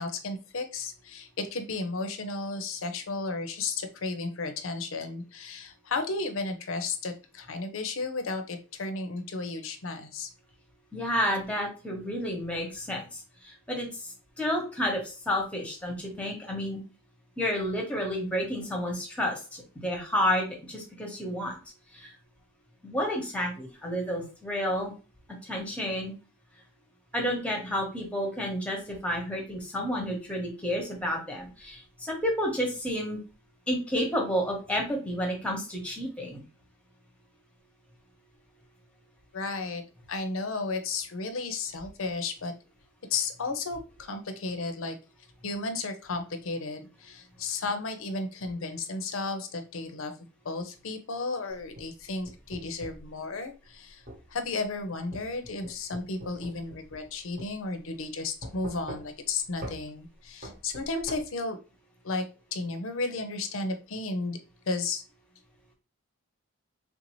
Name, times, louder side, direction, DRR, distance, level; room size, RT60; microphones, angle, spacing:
voice 1, 0.0-10.3 39.3-39.8 40.1-42.5 43.1-45.0 45.4-54.0 54.3-61.6 62.0-62.2 62.5-64.4 64.7-65.0, left 3 dB, 65° left, 7 dB, 0.6 m, -33 dB
voice 2, 10.9-13.9 14.4-16.8 17.4-21.5 21.9-22.1 22.8-24.9 25.4-26.1 27.1-33.2 33.7-36.4, equal, 5° left, 0 dB, 0.9 m, -30 dB
sound 1, 51.5-53.1 54.1-54.2 55.1-57.1 57.4-57.5 58.4-59.3 59.6-59.8 60.4-61.2, equal, 40° right, 0.9 m, -42 dB
3.5 x 2.6 x 3.0 m, 0.34 s
head